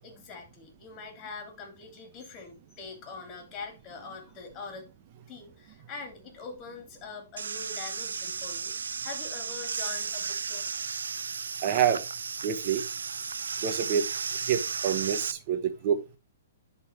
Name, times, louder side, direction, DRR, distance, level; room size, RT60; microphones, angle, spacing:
voice 1, 0.0-4.9 5.3-10.6, left 4 dB, 30° left, 3.1 m, -43 dB
sound 1, 7.4-15.3, right 5 dB, 85° right, 0.4 m, -34 dB
voice 2, 11.6-12.0 12.4-12.8 13.6-14.1 14.4-16.2, right 8 dB, 40° right, 1.2 m, -27 dB
10.5 x 4.1 x 3.2 m
hypercardioid pair, 135°, 0 cm